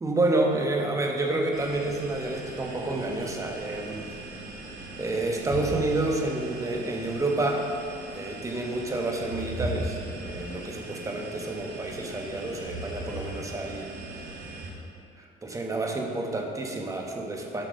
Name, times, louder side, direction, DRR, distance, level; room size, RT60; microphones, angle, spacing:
voice 1, 0.0-4.1 5.0-7.6 8.1-10.0 10.2-13.9 15.2-17.7, right 2 dB, 20° right, 2 dB, 1.0 m, -29 dB
sound 1, 1.5-14.7, right 1 dB, 60° right, 1.4 m, -39 dB
7.5 x 4.6 x 6.4 m, 2.5 s
cardioid pair, 110°, 17 cm